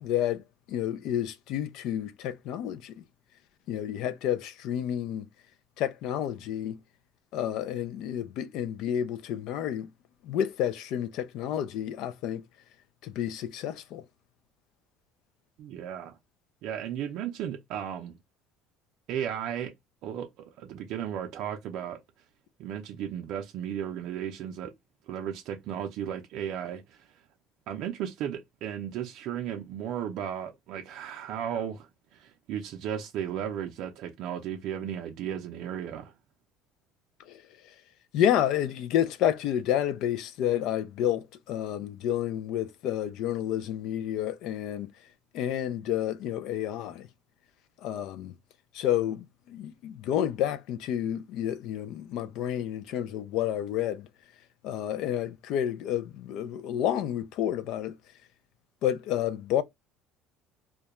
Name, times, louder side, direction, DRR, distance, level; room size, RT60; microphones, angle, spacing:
voice 1, 0.0-3.0 3.7-5.3 5.8-6.8 7.3-9.9 10.2-12.4 13.0-14.0 37.2-37.7 38.1-44.9 45.3-47.1 47.8-48.3 48.7-54.1 54.6-58.0 58.8-59.6, left 10 dB, 65° left, 0.3 m, -30 dB
voice 2, 15.6-16.2 16.6-18.2 19.1-19.7 20.0-22.0 22.6-24.7 25.1-27.2 27.7-36.1, right 9 dB, 65° right, 0.4 m, -35 dB
2.3 x 2.1 x 2.9 m
cardioid pair, 135°, 0 cm